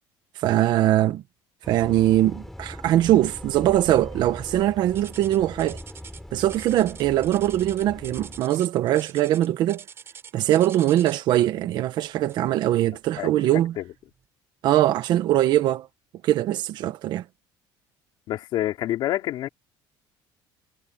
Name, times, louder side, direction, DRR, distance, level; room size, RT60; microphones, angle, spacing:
voice 1, 0.3-1.2 1.7-5.8 6.3-9.8 10.3-13.8 14.6-15.9 16.2-17.2, right 13 dB, 50° right, 1.5 m, -22 dB
sound 1, 1.6-8.4, left 1 dB, 5° left, 7.4 m, -41 dB
sound 2, 4.9-11.3 12.3-12.5 13.1-13.2 13.9-14.0, right 7 dB, 25° right, 7.2 m, -45 dB
voice 2, 18.3-19.5, left 14 dB, 55° left, 3.5 m, -27 dB
cardioid pair, 175°, 9 cm